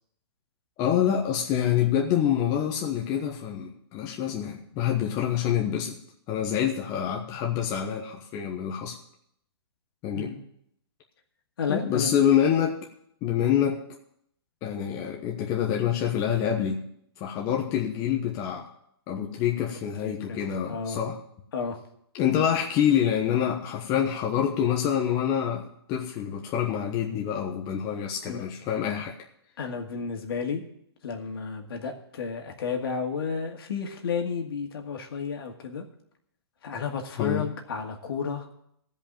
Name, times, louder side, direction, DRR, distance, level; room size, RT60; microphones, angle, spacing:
voice 1, 0.8-6.0 6.3-9.0 10.0-10.3 11.7-12.8 13.2-13.8 14.6-16.8 17.2-18.7 19.1-21.2 22.1-29.1 37.2-37.5, left 9 dB, 25° left, 1 dB, 1.1 m, -26 dB
voice 2, 11.6-12.2 20.0-21.0 21.5-21.8 28.2-28.5 29.6-30.6 31.0-35.8 36.6-38.5, left 6 dB, 65° left, 3 dB, 2.1 m, -32 dB
14.5 x 5.4 x 8.8 m, 0.73 s
hypercardioid pair, 150°, 14 cm